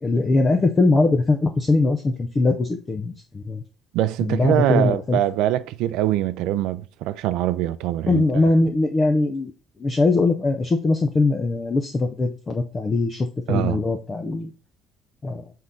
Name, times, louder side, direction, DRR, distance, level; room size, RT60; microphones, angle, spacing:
voice 1, 0.0-3.6 4.2-5.2 8.1-9.5 9.8-14.5 15.2-15.5, left 3 dB, 20° left, 0.6 m, -21 dB
voice 2, 3.9-8.2 13.5-13.8, right 13 dB, 80° right, 0.5 m, -23 dB
7.8 x 3.7 x 4.0 m
cardioid pair, 180°, 0 cm